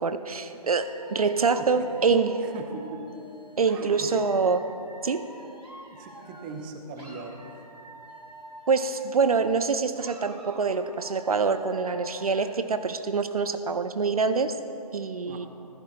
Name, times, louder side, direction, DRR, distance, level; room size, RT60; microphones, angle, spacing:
voice 1, 0.0-2.4 3.6-4.6 5.0-5.2 8.7-14.6 14.9-15.5, right 5 dB, 65° right, 10 dB, 0.6 m, -25 dB
Dog / Alarm, 0.8-6.7 6.9-9.7 10.0-12.7, right 2 dB, 80° right, 2.4 m, -48 dB
voice 2, 2.4-3.0 3.7-4.2 5.9-7.7 15.2-15.5, right 4 dB, 15° right, 5 dB, 0.5 m, -40 dB
15.0 x 14.5 x 2.5 m, 2.8 s
figure-of-eight pair, 145°, 21 cm